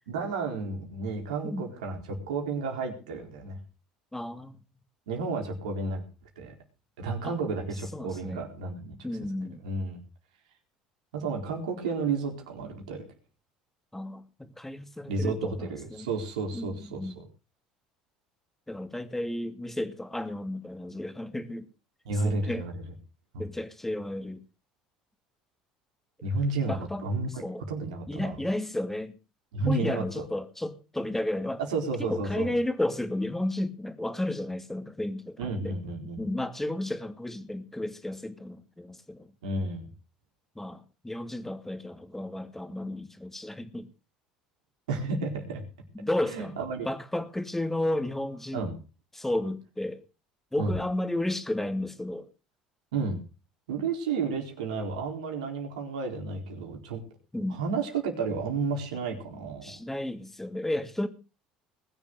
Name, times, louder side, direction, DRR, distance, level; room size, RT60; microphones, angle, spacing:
voice 1, 0.1-3.6 5.1-6.0 6.4-6.5 7.0-9.0 9.6-10.0 11.1-13.0 15.1-17.3 22.0-22.8 23.3-23.5 26.2-27.4 27.7-28.4 29.5-30.2 31.7-32.5 35.4-36.3 39.4-39.9 44.9-45.6 46.3-46.9 48.5-48.7 50.6-50.7 52.9-53.2 53.7-57.0 57.5-59.7, right 4 dB, 80° right, 4.3 m, -32 dB
voice 2, 4.1-4.6 7.2-7.4 7.9-8.4 9.0-9.6 13.9-16.1 16.5-17.2 18.7-21.7 22.2-22.6 23.4-24.4 26.7-27.0 27.4-27.6 28.1-29.1 29.7-31.6 32.1-35.4 35.6-35.7 36.2-39.3 40.6-43.9 45.9-46.5 46.8-48.7 49.1-50.0 50.5-52.3 57.3-57.6 59.6-61.1, left 1 dB, 10° left, 2.6 m, -32 dB
21.0 x 7.2 x 6.7 m
hypercardioid pair, 70°, 4 cm